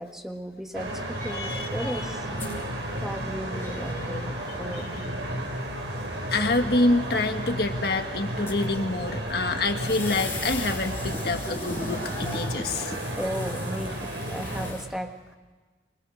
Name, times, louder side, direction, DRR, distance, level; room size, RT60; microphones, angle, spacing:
voice 1, 0.0-2.3 3.0-5.2 13.1-15.4, equal, 5° right, 3 dB, 1.6 m, -36 dB
sound 1, 0.7-14.7, right 1 dB, 75° right, 5.2 m, -33 dB
sound 2, 1.2-14.8, left 2 dB, 15° left, 6.6 m, -40 dB
voice 2, 1.3-2.1 4.7-4.8 6.3-12.9, left 2 dB, 60° left, 5 dB, 1.8 m, -27 dB
25.5 x 25.0 x 6.5 m, 1.3 s
head